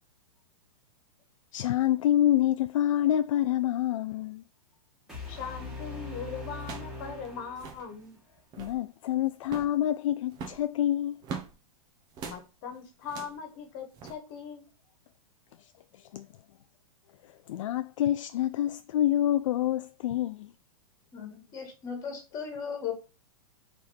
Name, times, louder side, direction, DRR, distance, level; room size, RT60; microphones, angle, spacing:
voice 1, 1.5-4.4 8.6-11.2 16.1-16.3 17.5-20.5, left 12 dB, 60° left, 0.4 m, -27 dB
sound 1, 5.1-8.2, left 3 dB, ahead, 1.8 m, -41 dB
voice 2, 5.3-8.2 12.2-14.6, left 6 dB, 40° left, 1.6 m, -40 dB
sound 2, 6.6-7.0 7.2-7.3 7.5-7.9 8.4-8.8 9.4-9.8 10.3-11.5 12.1-12.4 13.0-13.4 13.9-14.1, right 5 dB, 20° right, 1.0 m, -41 dB
voice 3, 21.1-22.9, left 7 dB, 20° left, 2.0 m, -37 dB
5.1 x 4.4 x 4.2 m
supercardioid pair, 160°, 18 cm